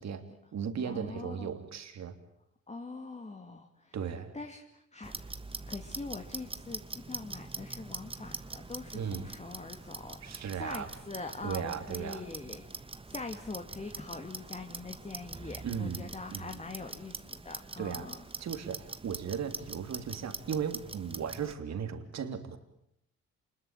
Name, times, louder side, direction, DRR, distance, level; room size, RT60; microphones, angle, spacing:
voice 1, 0.0-2.2 3.9-4.4 8.9-9.3 10.2-10.9 11.4-12.3 15.6-16.6 17.8-18.1 18.4-22.6, right 7 dB, 60° right, 8 dB, 3.2 m, -37 dB
voice 2, 0.8-1.5 2.7-4.0 4.3-5.1 5.7-18.1, left 3 dB, 20° left, 4 dB, 2.4 m, -43 dB
Clock, 5.0-21.5, right 3 dB, 20° right, 1.5 m, -44 dB
28.0 x 21.0 x 9.0 m, 0.79 s
cardioid pair, 90°, 30 cm